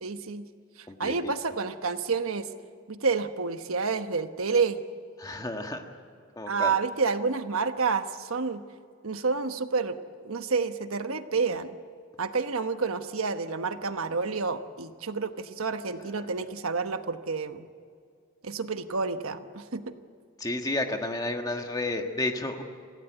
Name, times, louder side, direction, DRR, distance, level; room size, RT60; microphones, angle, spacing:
voice 1, 0.0-0.5 1.0-2.5 2.9-4.8 6.5-8.6 9.0-10.0 10.2-11.7 12.2-17.7 18.4-19.8, right 4 dB, 85° right, 9 dB, 1.1 m, -29 dB
voice 2, 5.2-5.8 6.3-6.7 16.4-16.5 20.4-22.6, left 2 dB, 20° left, 4 dB, 1.6 m, -31 dB
27.0 x 16.0 x 8.1 m, 2.2 s
head